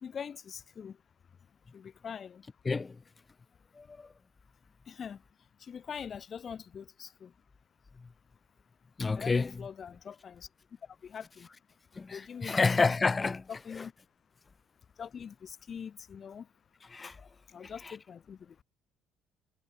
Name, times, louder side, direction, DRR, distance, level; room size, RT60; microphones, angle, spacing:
voice 1, 0.0-1.0 1.7-2.4 4.9-5.2 5.6-7.3 9.1-10.5 11.0-11.5 12.1-12.8 13.5-13.9 15.0-16.5 17.2-18.6, left 7 dB, 45° left, 1.8 m, -43 dB
voice 2, 3.8-4.1 9.0-9.5 12.0-13.5 13.8-13.9 16.9-17.2 17.6-17.7, left 4 dB, 25° left, 2.0 m, -29 dB
hypercardioid pair, 55°, 0 cm